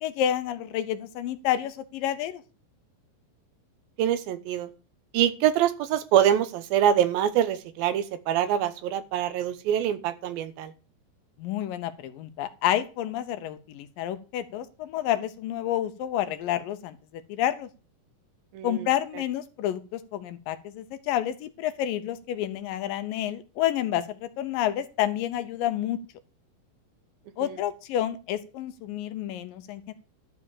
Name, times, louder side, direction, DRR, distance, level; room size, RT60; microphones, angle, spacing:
voice 1, 0.0-2.4 11.4-17.7 18.6-26.0 27.4-29.9, left 11 dB, 75° left, 11 dB, 2.4 m, -29 dB
voice 2, 4.0-4.7 5.1-10.7 18.5-18.8, right 10 dB, 85° right, 11 dB, 2.7 m, -24 dB
12.0 x 5.0 x 7.1 m, 0.35 s
omnidirectional pair, 4.1 m